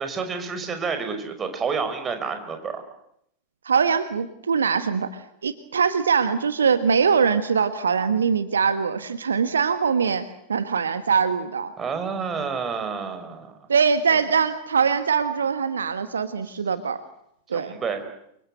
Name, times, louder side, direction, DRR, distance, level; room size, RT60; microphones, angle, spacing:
voice 1, 0.0-2.8 11.8-13.5 17.5-18.0, right 5 dB, 20° right, 7 dB, 5.6 m, -29 dB
voice 2, 3.6-11.7 13.7-17.0 17.5-17.8, right 6 dB, 70° right, 12 dB, 1.3 m, -22 dB
29.0 x 25.0 x 7.9 m, 0.75 s
figure-of-eight pair, 90°, 0 cm